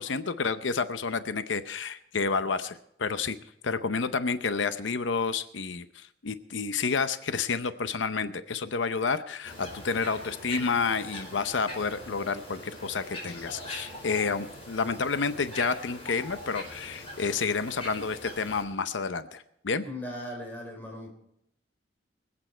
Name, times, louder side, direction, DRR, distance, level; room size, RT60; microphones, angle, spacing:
voice 1, 0.0-3.4 3.6-19.8, left 5 dB, 90° left, 11 dB, 0.7 m, -30 dB
sound 1, 9.4-18.6, left 1 dB, 30° left, 5.0 m, -42 dB
voice 2, 19.8-21.1, left 1 dB, 10° left, 0 dB, 4.0 m, -38 dB
25.0 x 8.8 x 4.4 m, 0.77 s
head